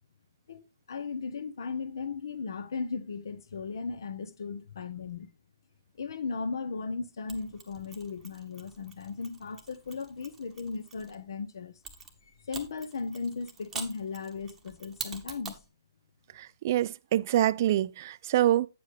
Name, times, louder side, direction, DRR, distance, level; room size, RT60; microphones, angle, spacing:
voice 1, 0.9-5.3 6.0-11.7 12.5-15.6, left 4 dB, 65° left, 0.9 m, -36 dB
Mechanisms, 7.3-11.1 11.8-15.7, right 6 dB, 10° right, 1.0 m, -45 dB
voice 2, 16.4-18.7, right 13 dB, 45° right, 0.3 m, -26 dB
8.6 x 7.4 x 3.3 m
hypercardioid pair, 135°, 2 cm